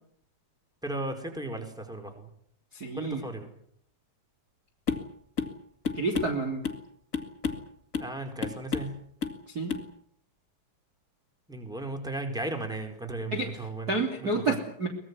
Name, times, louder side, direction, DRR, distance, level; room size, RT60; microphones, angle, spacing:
voice 1, 0.8-2.3 2.9-3.5 8.0-8.9 11.5-14.6, right 2 dB, ahead, 5 dB, 4.1 m, -36 dB
voice 2, 2.7-3.2 5.9-6.6 9.5-9.7 13.3-13.5 13.9-14.9, right 3 dB, 25° right, 2 dB, 3.2 m, -29 dB
sound 1, 4.9-5.1 5.4-5.6 5.8-6.8 7.1-7.7 7.9-8.1 8.4-8.9 9.2-9.4 9.7-9.9, left 6 dB, 30° left, 1.9 m, -31 dB
23.5 x 21.0 x 8.4 m, 0.65 s
omnidirectional pair, 4.4 m